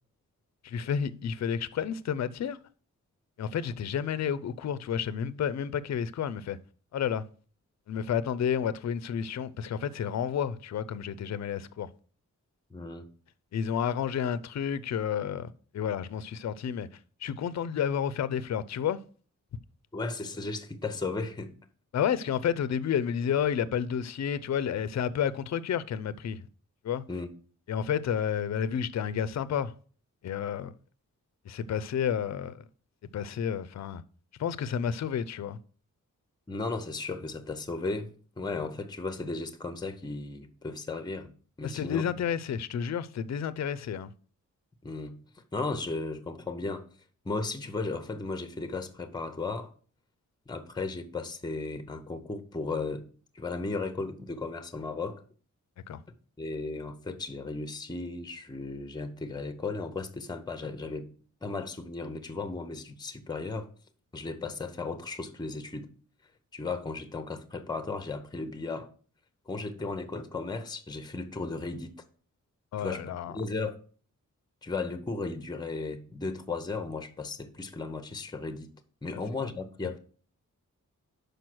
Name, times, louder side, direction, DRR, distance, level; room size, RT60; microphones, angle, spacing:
voice 1, 0.6-2.6 3.4-6.6 6.9-7.2 7.9-11.9 13.5-16.9 17.2-19.0 21.9-26.4 26.8-27.0 27.7-29.7 30.2-30.7 31.4-32.6 33.1-34.0 34.4-35.6 41.6-44.1 55.9-56.0 72.7-73.3, left 8 dB, 60° left, 0.5 m, -30 dB
voice 2, 12.7-13.1 19.9-21.5 27.1-27.3 36.5-41.3 41.6-42.0 44.8-46.8 47.2-49.7 50.5-53.1 53.3-55.2 56.4-61.1 61.4-63.7 64.1-65.9 66.5-68.9 69.5-71.9 72.8-73.8 74.6-78.7 79.0-80.0, left 3 dB, 15° left, 0.6 m, -35 dB
6.1 x 5.0 x 6.0 m
wide cardioid pair, 165°, 32 cm